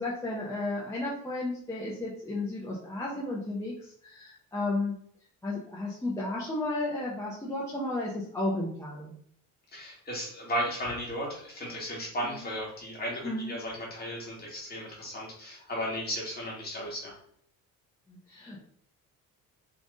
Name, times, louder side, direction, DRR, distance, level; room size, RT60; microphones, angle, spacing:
voice 1, 0.0-3.7 4.0-4.9 5.4-9.1 13.2-13.5 18.1-18.6, left 2 dB, 10° left, -6 dB, 0.9 m, -33 dB
voice 2, 9.7-17.2, equal, 25° left, -3 dB, 1.9 m, -35 dB
4.1 x 3.4 x 3.6 m, 0.62 s
cardioid pair, 155°, 35 cm